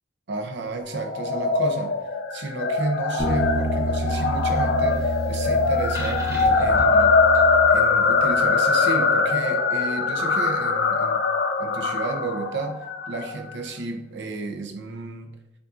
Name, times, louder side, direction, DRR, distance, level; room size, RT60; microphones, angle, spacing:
voice 1, 0.3-2.0 2.3-7.1 7.7-11.2 11.6-12.8 13.1-15.3, right 3 dB, 65° right, 4 dB, 0.6 m, -32 dB
sound 1, 0.9-13.4, left 4 dB, 60° left, 0.5 m, -22 dB
sound 2, 3.2-8.1, right 1 dB, 20° right, 1.1 m, -28 dB
6.8 x 2.6 x 2.5 m, 0.88 s
head